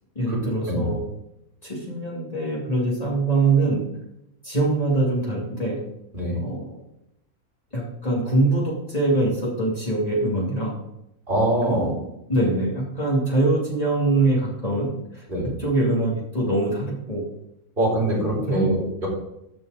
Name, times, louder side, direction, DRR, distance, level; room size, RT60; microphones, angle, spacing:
voice 1, 0.1-1.0 1.6-3.8 4.4-5.8 6.4-6.7 7.7-10.8 11.7-12.0 12.3-15.2 15.6-17.2 18.2-18.8, right 2 dB, 25° left, -5 dB, 2.7 m, -23 dB
voice 2, 11.3-11.9 15.3-15.5 17.8-19.1, right 1 dB, 35° right, -5 dB, 4.4 m, -23 dB
13.5 x 5.4 x 5.1 m, 0.83 s
omnidirectional pair, 1.5 m